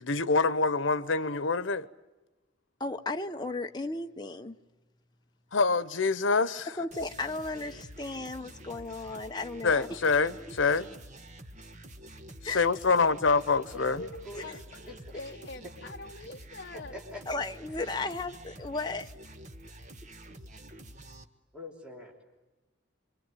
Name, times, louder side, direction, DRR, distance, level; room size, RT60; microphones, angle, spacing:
voice 1, 0.0-1.9 5.5-6.7 9.6-10.9 12.4-14.0, left 4 dB, 85° left, 0.9 m, -26 dB
voice 2, 2.8-4.6 6.8-10.0 12.4-12.7 14.3-14.4 17.3-19.1, left 3 dB, 20° left, 0.9 m, -35 dB
sound 1, 6.9-21.2, right 1 dB, 40° right, 1.4 m, -48 dB
voice 3, 13.7-14.5 15.1-15.2 16.7-17.2 17.7-18.1 21.5-22.2, left 1 dB, 5° right, 3.2 m, -44 dB
voice 4, 14.4-17.0, left 3 dB, 50° left, 0.9 m, -45 dB
25.0 x 25.0 x 9.1 m
head